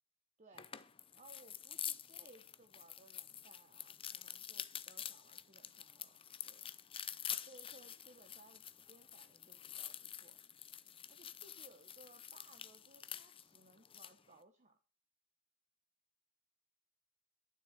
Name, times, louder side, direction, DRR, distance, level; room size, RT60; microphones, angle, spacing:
voice 1, 0.4-0.7 1.1-6.1 6.5-6.6 7.4-10.4 11.1-14.8, right 2 dB, 35° right, 5 dB, 1.1 m, -63 dB
sound 1, 0.6-14.2, left 9 dB, 25° left, 0.6 m, -48 dB
12.0 x 7.0 x 7.5 m, 0.38 s
head